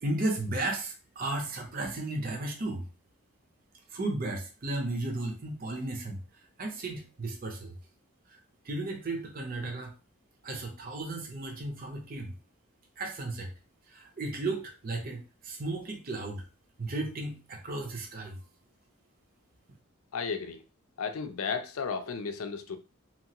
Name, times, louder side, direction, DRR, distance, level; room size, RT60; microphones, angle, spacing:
voice 1, 0.0-2.8 3.9-6.2 6.6-7.7 8.3-9.9 10.4-12.3 13.0-13.5 13.9-16.4 16.8-18.4, right 2 dB, 40° right, 0.6 m, -34 dB
voice 2, 20.1-20.6 21.0-22.8, left 5 dB, 80° left, 0.4 m, -34 dB
2.9 x 2.4 x 2.9 m
head